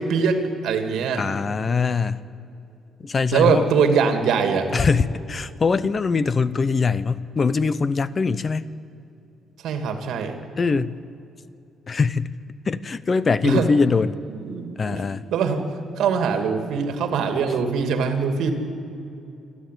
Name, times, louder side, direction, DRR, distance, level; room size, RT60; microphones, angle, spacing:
voice 1, 0.0-1.3 3.3-4.7 9.6-10.4 13.4-13.7 14.3-15.0 15.3-15.7 16.0-18.5, right 6 dB, 75° right, 7 dB, 2.6 m, -22 dB
voice 2, 1.2-2.3 3.0-3.7 4.7-8.7 10.6-10.9 11.9-12.3 12.7-14.2 14.8-15.2, left 4 dB, 30° left, 17 dB, 0.6 m, -22 dB
27.5 x 12.5 x 9.4 m, 2.7 s
cardioid pair, 150°, 0 cm